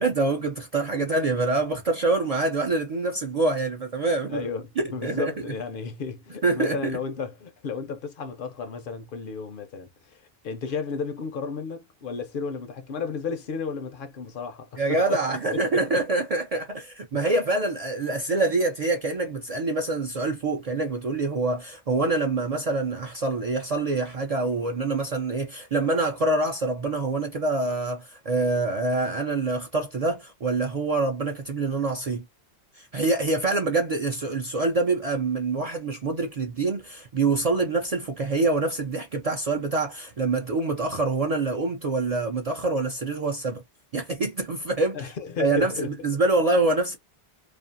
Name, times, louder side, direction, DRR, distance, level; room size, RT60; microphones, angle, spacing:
voice 1, 0.0-4.5 4.8-5.3 6.4-6.9 14.8-32.2 32.7-43.6 43.9-45.1 45.4-47.0, right 3 dB, 55° right, 0.4 m, -25 dB
voice 2, 4.3-15.2 15.7-15.8 44.9-45.9, left 5 dB, 65° left, 0.7 m, -33 dB
2.5 x 2.3 x 2.6 m
omnidirectional pair, 1.0 m